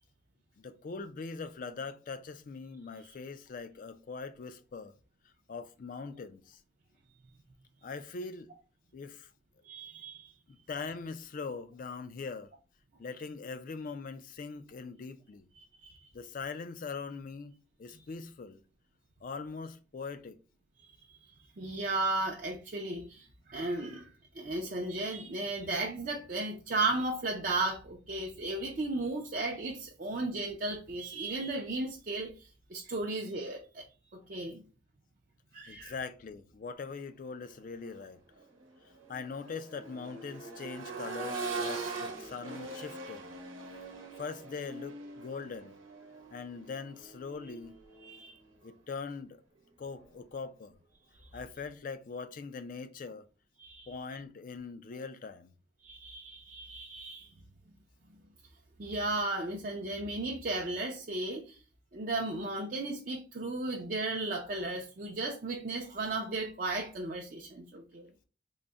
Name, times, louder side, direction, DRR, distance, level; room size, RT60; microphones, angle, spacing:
voice 1, 0.6-4.9 5.5-6.6 7.8-8.5 8.9-9.3 10.5-12.5 13.0-15.5 16.1-17.5 17.8-18.6 19.2-20.4 35.7-38.2 39.1-43.3 44.2-45.8 46.3-47.8 48.6-49.4 49.8-50.8 51.3-53.2 53.9-55.5, left 4 dB, 45° left, 0.3 m, -41 dB
voice 2, 9.6-10.3 15.6-16.0 20.8-20.9 21.6-24.1 24.4-32.3 32.7-33.8 34.3-34.6 35.5-35.9 41.7-41.9 48.0-48.3 53.6-53.9 55.8-57.3 58.8-61.4 61.9-68.1, right 2 dB, 45° right, 0.5 m, -35 dB
Accelerating revving vroom, 37.7-37.9 38.3-48.2 49.9-50.0, right 3 dB, 85° right, 0.9 m, -42 dB
3.9 x 2.1 x 3.4 m
head